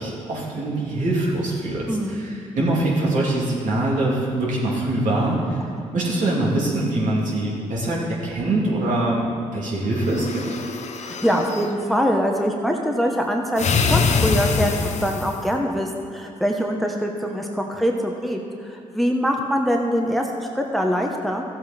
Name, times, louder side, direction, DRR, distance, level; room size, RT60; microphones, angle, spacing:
voice 1, 0.0-5.6 5.9-10.5, right 2 dB, 65° right, -5 dB, 3.1 m, -23 dB
voice 2, 1.9-2.3 5.7-5.9 11.0-21.4, equal, ahead, 1 dB, 1.1 m, -24 dB
sound 1, 10.0-11.7 13.6-15.5, left 5 dB, 55° left, 0.9 m, -24 dB
14.0 x 7.6 x 4.4 m, 2.3 s
supercardioid pair, 60°, 14 cm